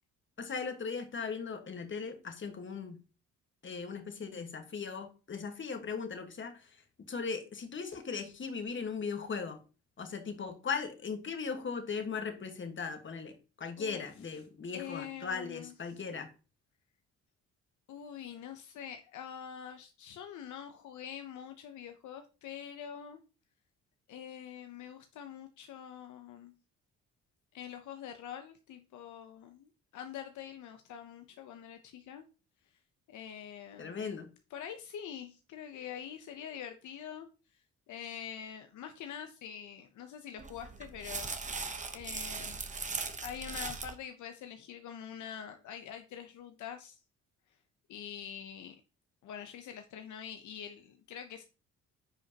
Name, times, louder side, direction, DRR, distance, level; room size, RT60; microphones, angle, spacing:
voice 1, 0.4-3.0 3.6-6.7 7.1-9.6 10.0-16.3 33.8-34.3, left 5 dB, 40° left, 7 dB, 1.6 m, -38 dB
voice 2, 14.7-15.7 17.9-23.2 24.1-26.5 27.5-32.2 33.1-34.1 34.5-37.3 37.9-42.6 43.2-47.0 47.9-48.8 49.2-51.4, left 9 dB, 75° left, 7 dB, 0.8 m, -45 dB
sound 1, 40.4-44.0, right 4 dB, 25° right, 1.0 m, -39 dB
10.5 x 5.1 x 2.9 m, 0.33 s
cardioid pair, 90°, 30 cm